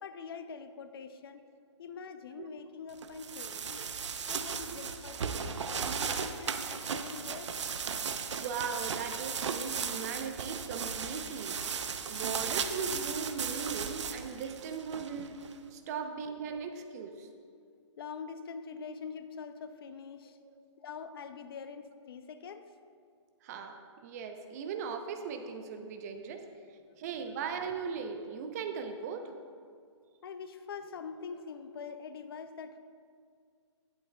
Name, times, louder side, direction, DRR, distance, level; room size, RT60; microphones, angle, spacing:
voice 1, 0.0-1.4 1.8-3.8 4.2-7.5 12.1-12.2 18.0-20.4 20.8-22.6 26.8-27.0 30.2-32.8, left 5 dB, 50° left, 10 dB, 0.6 m, -44 dB
sound 1, 3.0-15.5, right 6 dB, 70° right, 0.7 m, -36 dB
voice 2, 8.4-11.6 12.1-15.4 15.7-17.3 20.4-20.6 23.4-23.7 24.0-26.4 26.7-29.4, right 6 dB, 35° right, 6 dB, 0.7 m, -38 dB
12.0 x 10.5 x 2.3 m, 2.2 s
hypercardioid pair, 145°, 15 cm